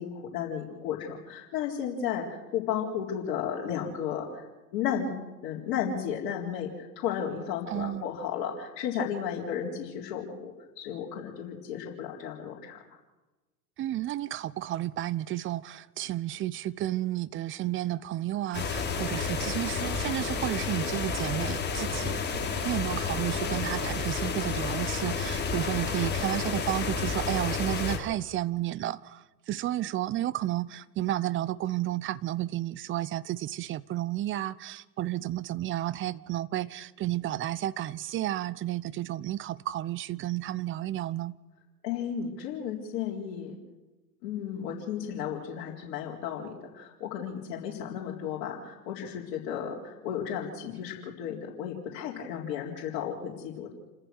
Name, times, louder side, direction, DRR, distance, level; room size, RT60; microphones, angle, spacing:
voice 1, 0.0-4.4 4.7-5.1 5.4-12.8 41.8-43.6 44.2-53.7, left 8 dB, 50° left, 4.1 m, -34 dB
voice 2, 7.7-8.1 13.8-41.4, right 14 dB, 25° right, 0.7 m, -32 dB
sound 1, 18.5-28.0, left 5 dB, 20° left, 3.8 m, -31 dB
29.0 x 14.5 x 6.4 m
hypercardioid pair, 95°, 49 cm